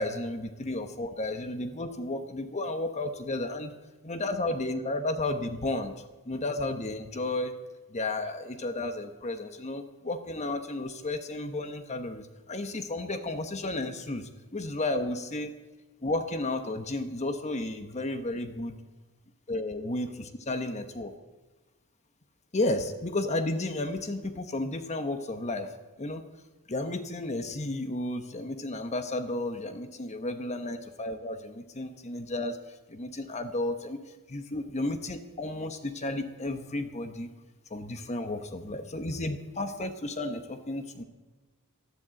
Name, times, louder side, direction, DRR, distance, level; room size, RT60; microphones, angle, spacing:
voice 1, 0.0-3.7 4.0-5.9 6.3-7.5 7.9-15.5 16.0-18.8 19.5-21.1 22.5-25.7 26.0-26.2 26.7-32.6 32.9-34.0 34.3-37.3 37.7-41.0, left 2 dB, 30° left, 8 dB, 1.0 m, -33 dB
13.0 x 11.5 x 7.6 m, 1.2 s
head